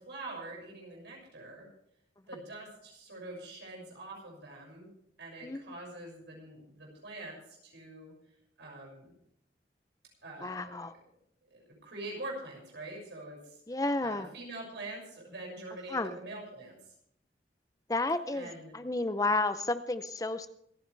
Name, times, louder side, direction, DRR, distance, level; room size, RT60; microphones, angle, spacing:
voice 1, 0.0-1.7 2.3-4.9 5.2-7.4 7.6-8.1 8.6-9.1 10.2-10.9 11.5-13.6 14.0-16.8 18.3-18.8, right 2 dB, 85° right, -1 dB, 6.2 m, -44 dB
voice 2, 10.4-10.9 13.7-14.3 15.9-16.2 17.9-20.5, left 2 dB, 20° left, 11 dB, 0.6 m, -31 dB
26.0 x 9.8 x 3.4 m, 0.73 s
head